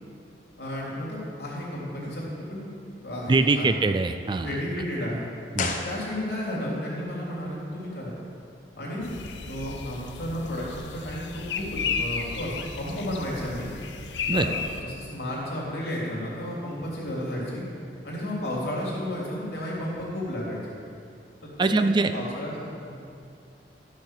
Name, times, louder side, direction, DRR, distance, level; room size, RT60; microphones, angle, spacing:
voice 1, 0.6-2.7 3.0-3.7 4.4-5.2 5.8-8.1 8.7-9.1 9.4-13.7 14.3-14.5 14.8-17.6 18.0-20.6 21.4-22.9, left 1 dB, 65° left, -5 dB, 3.2 m, -32 dB
voice 2, 3.3-4.6 5.5-5.8 14.3-14.5 21.6-22.1, right 3 dB, 25° right, 9 dB, 0.3 m, -23 dB
sound 1, 5.5-6.6 6.9-7.0, left 4 dB, 45° left, 0.8 m, -32 dB
sound 2, 9.0-14.8, left 5 dB, 85° left, 0.7 m, -33 dB
13.0 x 6.5 x 6.6 m, 2.4 s
head